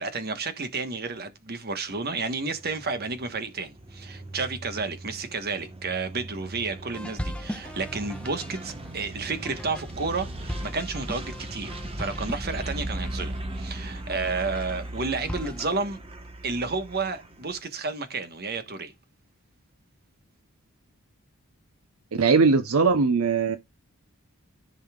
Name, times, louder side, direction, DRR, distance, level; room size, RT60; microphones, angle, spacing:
voice 1, 0.0-16.0 16.4-18.9, right 4 dB, 45° right, 1.3 m, -31 dB
sound 1, 2.0-17.6, right 1 dB, 25° right, 1.2 m, -38 dB
sound 2, 6.9-15.8, equal, 5° left, 0.6 m, -40 dB
voice 2, 22.1-23.6, right 4 dB, 70° right, 0.7 m, -20 dB
14.0 x 5.4 x 2.4 m
head